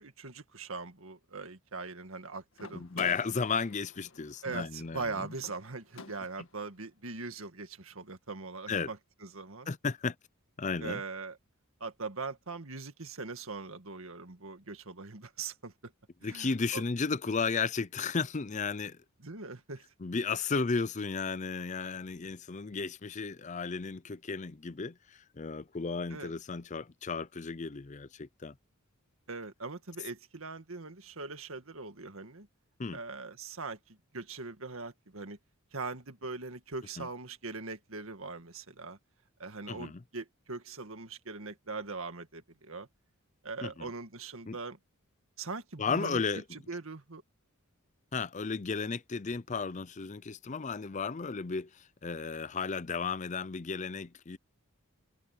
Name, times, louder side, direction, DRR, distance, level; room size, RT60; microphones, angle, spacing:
voice 1, 0.0-3.1 4.4-9.7 10.8-11.4 11.8-15.9 16.2-16.8 19.2-19.8 26.1-26.3 29.3-32.5 32.9-35.4 35.7-39.0 39.4-42.9 43.4-44.8 45.4-46.2 46.5-47.2, right 3 dB, 70° right, 1.9 m, -41 dB
sound 1, 2.5-6.7, left 3 dB, 65° left, 1.8 m, -51 dB
voice 2, 2.7-5.3 8.7-8.9 9.7-10.2 10.6-11.0 16.2-19.0 20.0-28.5 32.8-33.0 37.0-37.1 39.7-40.0 43.6-43.9 44.5-44.6 45.8-46.4 48.1-54.4, left 5 dB, 35° left, 0.5 m, -34 dB
head